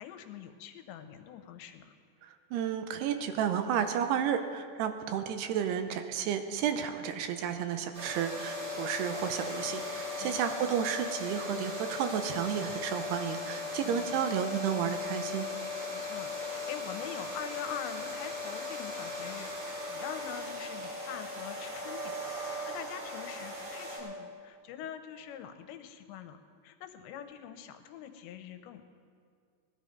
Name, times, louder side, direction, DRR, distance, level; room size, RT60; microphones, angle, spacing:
voice 1, 0.0-1.9 10.2-10.7 13.8-14.3 15.9-22.2 22.4-28.8, left 9 dB, 85° left, 8 dB, 3.1 m, -44 dB
voice 2, 2.2-15.5, right 8 dB, 75° right, 8 dB, 2.6 m, -32 dB
sound 1, 7.9-24.0, left 2 dB, 45° right, 5.9 m, -38 dB
20.0 x 12.0 x 5.2 m, 2.1 s
omnidirectional pair, 5.0 m